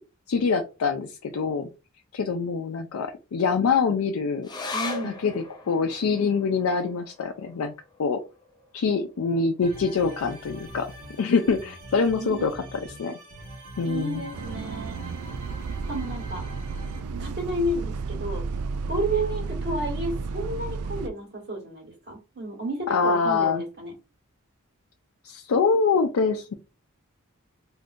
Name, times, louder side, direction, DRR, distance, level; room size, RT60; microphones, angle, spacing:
voice 1, 0.3-1.7 2.1-4.5 5.0-7.7 8.0-8.2 8.7-10.9 11.2-13.2 13.8-14.3 22.9-23.6 25.2-26.5, left 5 dB, 75° left, 4 dB, 0.4 m, -25 dB
sound 1, 4.4-11.2 11.5-11.6 12.0-12.6 13.2-13.3, left 3 dB, 20° left, 0.5 m, -40 dB
voice 2, 4.7-5.2 12.1-12.5 13.8-15.0 15.8-16.5 17.2-18.4 18.9-23.9, right 1 dB, 50° right, 0 dB, 1.5 m, -31 dB
sound 2, 9.6-17.0, right 1 dB, 70° right, 1.2 m, -43 dB
Bus, 14.3-21.1, right 4 dB, 85° right, 0.3 m, -32 dB
3.5 x 2.6 x 2.4 m, 0.30 s
head